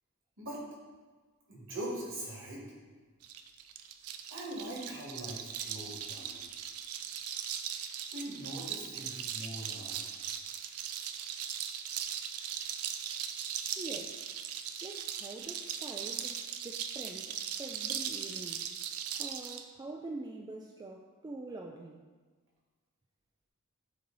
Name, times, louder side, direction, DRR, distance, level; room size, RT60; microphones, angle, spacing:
voice 1, 1.5-2.6 4.3-6.4 8.1-10.0, right 1 dB, 60° right, -4 dB, 2.0 m, -42 dB
sound 1, 3.2-19.6, right 9 dB, 90° right, 0.4 m, -39 dB
voice 2, 13.8-14.2 14.8-18.7 19.2-22.0, right 2 dB, 20° right, 2 dB, 0.3 m, -45 dB
9.3 x 3.1 x 4.0 m, 1.4 s
head